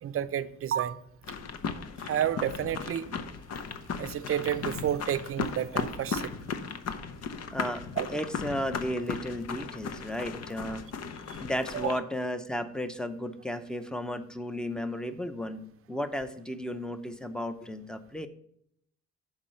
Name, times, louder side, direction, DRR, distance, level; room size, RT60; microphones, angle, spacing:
voice 1, 0.0-1.0 2.0-3.1 3.7-6.3 8.0-8.2 11.3-11.4 11.7-12.0, right 10 dB, 50° right, 0.6 m, -31 dB
sound 1, 1.2-12.0, left 5 dB, 55° left, 0.8 m, -36 dB
voice 2, 7.5-10.8 11.4-18.3, equal, 5° left, 0.7 m, -34 dB
7.3 x 4.8 x 6.5 m
cardioid pair, 90°, 30 cm